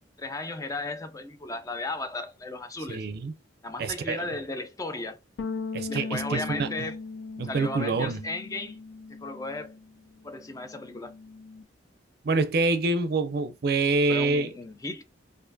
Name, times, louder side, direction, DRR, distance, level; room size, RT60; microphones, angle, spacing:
voice 1, 0.2-3.1 3.6-5.2 5.9-7.0 7.4-8.8 9.1-9.8 10.2-11.1 14.1-15.0, left 2 dB, 20° left, 0.4 m, -35 dB
voice 2, 2.9-3.3 3.8-4.3 5.7-6.7 7.4-8.2 12.2-14.5, right 3 dB, 55° right, 0.5 m, -26 dB
sound 1, 5.4-9.9 10.2-11.6, left 4 dB, 90° left, 0.4 m, -38 dB
4.2 x 2.5 x 2.6 m
head